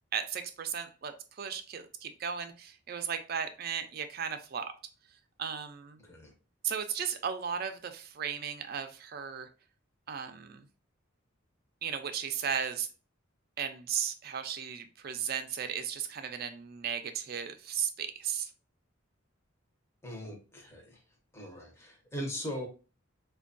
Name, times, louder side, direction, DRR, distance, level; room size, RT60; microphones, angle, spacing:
voice 1, 0.1-4.7 5.4-6.0 6.6-9.5 10.1-10.7 11.8-12.9 13.6-18.5, right 7 dB, 50° right, 7 dB, 0.4 m, -35 dB
voice 2, 20.0-21.0 21.3-22.7, equal, 15° left, 0 dB, 0.7 m, -40 dB
4.3 x 2.2 x 2.5 m, 0.34 s
head